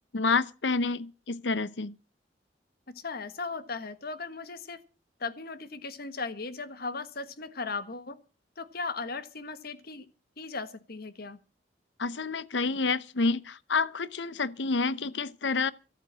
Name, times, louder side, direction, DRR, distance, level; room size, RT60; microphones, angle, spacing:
voice 1, 0.1-1.9 12.0-15.7, left 4 dB, 75° left, 0.8 m, -28 dB
voice 2, 2.9-4.8 5.2-8.2 8.6-10.1 10.4-11.4, left 4 dB, 55° left, 1.5 m, -37 dB
14.5 x 8.9 x 7.5 m
head